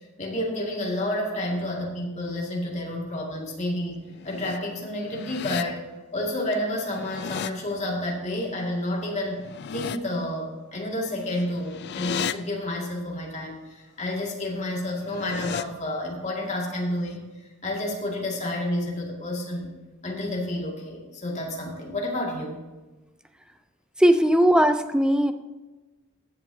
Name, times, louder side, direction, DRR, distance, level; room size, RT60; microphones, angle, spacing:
voice 1, 0.2-5.8 6.1-17.3 17.6-19.8 20.0-22.6, left 1 dB, 35° left, -1 dB, 2.2 m, -30 dB
sound 1, 4.0-4.6 5.0-5.6 6.8-7.5 9.3-10.0 11.2-12.3 14.9-15.6, left 7 dB, 55° left, 0.4 m, -34 dB
voice 2, 24.0-25.3, equal, 5° right, 8 dB, 0.5 m, -18 dB
14.5 x 8.2 x 2.8 m, 1.2 s
head